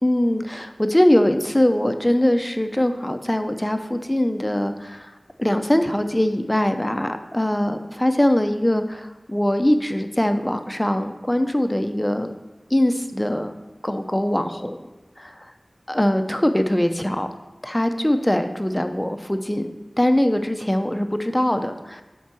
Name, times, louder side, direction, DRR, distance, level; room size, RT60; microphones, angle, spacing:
voice 1, 0.0-5.1 5.4-12.3 12.7-13.5 13.8-14.8 15.2-15.5 15.9-17.3 17.6-22.0, left 1 dB, 15° left, 7 dB, 0.7 m, -22 dB
7.1 x 4.7 x 6.1 m, 1.1 s
wide cardioid pair, 45°, 0 cm